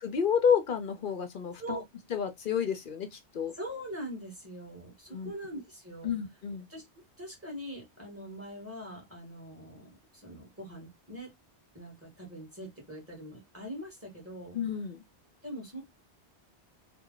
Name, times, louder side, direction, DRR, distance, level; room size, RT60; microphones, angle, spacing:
voice 1, 0.0-1.8 2.1-3.5 5.1-5.3 6.0-6.7 14.5-15.0, left 7 dB, 55° left, 0.7 m, -30 dB
voice 2, 3.5-6.1 6.7-6.9 7.2-11.3 11.7-14.6 15.4-15.8, right 1 dB, 10° right, 1.7 m, -42 dB
3.2 x 2.2 x 3.8 m
omnidirectional pair, 1.1 m